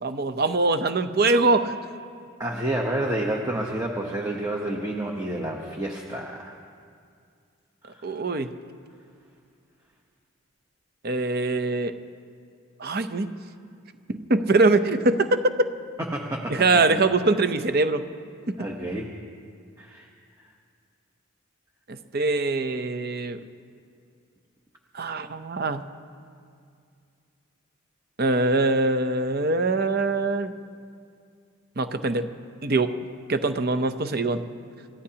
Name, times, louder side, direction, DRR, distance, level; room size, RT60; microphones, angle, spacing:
voice 1, 0.0-1.8 8.0-8.5 11.0-11.9 12.8-13.3 14.1-15.3 16.5-18.0 18.5-18.6 21.9-23.4 24.9-25.9 28.2-30.5 31.8-32.3 32.6-32.9 33.3-34.4, right 3 dB, 45° right, 10 dB, 0.7 m, -23 dB
voice 2, 2.4-6.6 7.9-8.0 16.1-16.6 18.6-19.1 19.8-20.1, right 1 dB, 15° right, -1 dB, 1.0 m, -29 dB
29.5 x 15.5 x 2.9 m, 2.3 s
head